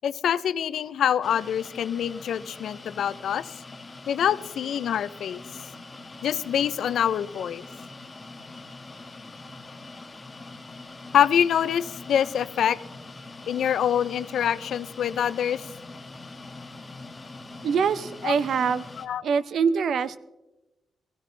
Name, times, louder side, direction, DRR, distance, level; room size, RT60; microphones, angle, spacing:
voice 1, 0.0-3.5 4.1-5.4 6.2-7.6 11.1-12.8 13.5-15.7 18.2-18.4 19.0-19.2, left 9 dB, 75° left, 16 dB, 0.4 m, -25 dB
sound 1, 1.2-19.1, left 3 dB, 25° left, 1.5 m, -43 dB
voice 2, 17.6-18.8 19.2-20.2, right 6 dB, 70° right, 15 dB, 0.6 m, -24 dB
19.5 x 16.0 x 3.3 m, 1.0 s
cardioid pair, 110°, 0 cm